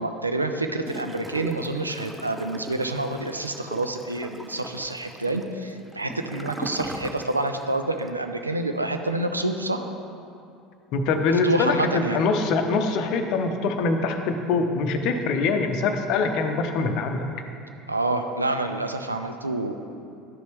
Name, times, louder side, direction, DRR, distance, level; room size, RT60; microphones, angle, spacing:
voice 1, 0.0-9.9 11.4-12.2 17.9-19.8, right 2 dB, 90° right, 6 dB, 0.4 m, -27 dB
Gurgling / Toilet flush, 0.8-7.7 8.0-8.1, right 1 dB, 10° right, 0.3 m, -39 dB
voice 2, 10.9-17.2, left 4 dB, 55° left, 6 dB, 0.6 m, -24 dB
11.0 x 5.1 x 3.5 m, 2.5 s
figure-of-eight pair, 65°, 0 cm